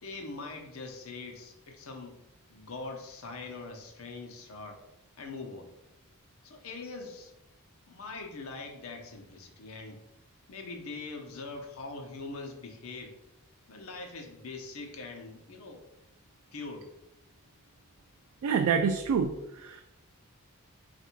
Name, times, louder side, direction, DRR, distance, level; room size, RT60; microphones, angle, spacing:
voice 1, 0.0-2.2 2.5-4.8 5.2-5.7 6.4-7.3 7.9-10.0 10.5-13.2 13.7-15.8 16.5-16.9, left 3 dB, 65° left, 3 dB, 0.7 m, -42 dB
voice 2, 18.4-19.3 19.6-19.8, right 6 dB, 75° right, 5 dB, 0.3 m, -26 dB
3.4 x 2.5 x 4.3 m, 0.88 s
head